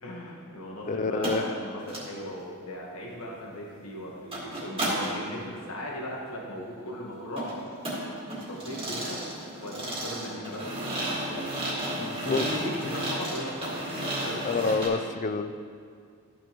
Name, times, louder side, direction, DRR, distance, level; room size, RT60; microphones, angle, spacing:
voice 1, 0.0-7.6 8.5-9.3 9.6-11.5 12.2-13.8 14.1-14.4, equal, 85° left, -3 dB, 1.4 m, -38 dB
voice 2, 0.9-1.4 12.0-12.4 14.4-15.5, left 3 dB, 35° left, 9 dB, 0.3 m, -28 dB
sound 1, 1.2-1.4 1.8-2.0 4.3-5.1 7.4-14.9, right 1 dB, 25° right, 2.0 m, -33 dB
13.5 x 6.2 x 3.0 m, 2.2 s
head